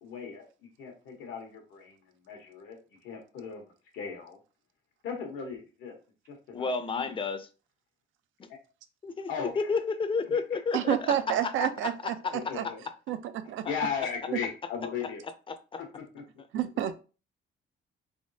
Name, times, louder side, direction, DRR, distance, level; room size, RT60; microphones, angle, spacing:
voice 1, 0.0-0.5 0.8-2.0 2.2-4.4 5.0-5.9 6.3-7.1 8.5-8.6 9.3-9.7 10.3-10.4 12.3-12.8 13.7-15.2 15.8-16.2, left 6 dB, 90° left, 1.2 m, -37 dB
voice 2, 6.5-7.5 8.4-8.5 9.0-12.1 13.6-13.7 15.5-15.8, left 4 dB, 25° left, 0.5 m, -31 dB
voice 3, 10.7-12.2 12.5-12.6 13.1-13.2 13.5-13.6 16.5-17.0, right 11 dB, 80° right, 0.5 m, -28 dB
3.5 x 3.0 x 2.7 m
cardioid pair, 90°, 20 cm